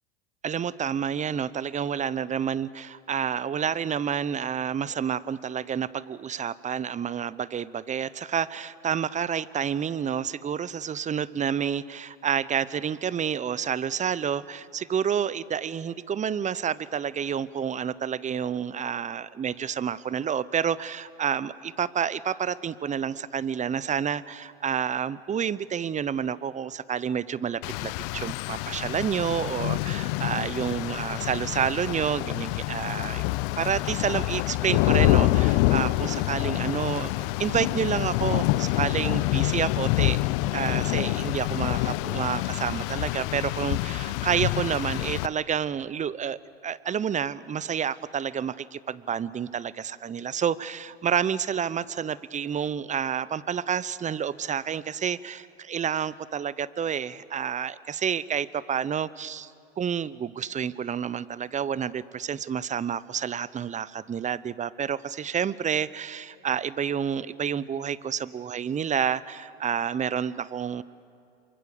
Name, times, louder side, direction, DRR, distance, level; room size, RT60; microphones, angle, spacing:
voice 1, 0.4-33.2 33.6-40.2 40.5-59.5 59.8-70.8, right 8 dB, 25° right, 19 dB, 0.8 m, -29 dB
Rain, 27.6-45.3, left 18 dB, 60° left, 0.8 m, -27 dB
27.5 x 24.0 x 7.1 m, 2.5 s
hypercardioid pair, 85°, 31 cm